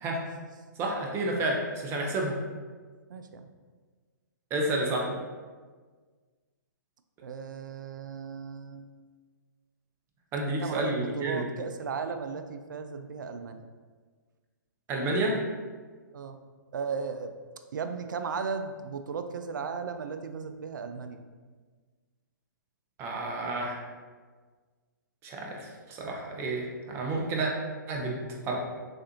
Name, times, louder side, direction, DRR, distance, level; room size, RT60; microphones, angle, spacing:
voice 1, 0.8-2.3 4.5-5.2 10.3-11.5 14.9-15.4 23.0-23.8 25.2-27.5 27.9-28.6, right 2 dB, 25° right, 0 dB, 0.7 m, -30 dB
voice 2, 3.1-3.5 7.2-8.9 10.6-13.6 16.1-16.4 16.7-17.3 17.7-21.2, right 5 dB, 70° right, 8 dB, 0.4 m, -36 dB
6.3 x 2.5 x 2.9 m, 1.5 s
hypercardioid pair, 130°, 11 cm